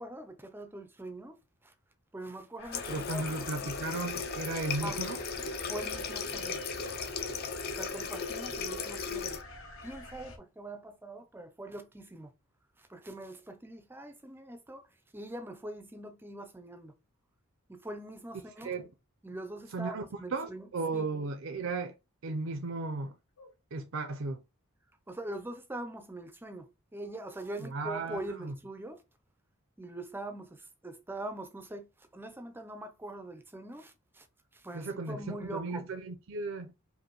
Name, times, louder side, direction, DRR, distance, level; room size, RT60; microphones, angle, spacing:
voice 1, 0.0-1.4 1.6-1.7 2.1-3.2 3.6-3.7 4.7-5.0 5.5-6.6 7.7-9.4 9.8-12.3 12.8-14.9 15.1-16.9 17.7-18.7 19.2-21.1 25.1-29.0 29.8-34.3 34.5-35.9, right 1 dB, 10° right, 0.4 m, -43 dB
sound 1, 2.6-10.4, left 3 dB, 65° left, 0.9 m, -47 dB
Water tap faucet, 2.7-9.4, left 5 dB, 45° left, 0.6 m, -36 dB
voice 2, 2.9-5.2 18.6-18.9 19.7-20.0 20.3-21.9 22.2-23.1 23.7-24.4 27.6-28.5 34.7-36.7, right 3 dB, 65° right, 0.5 m, -35 dB
sound 2, 23.0-23.1 23.4-23.6 23.9-24.2 27.0-28.0, equal, 80° left, 1.8 m, -56 dB
5.0 x 2.6 x 2.9 m
head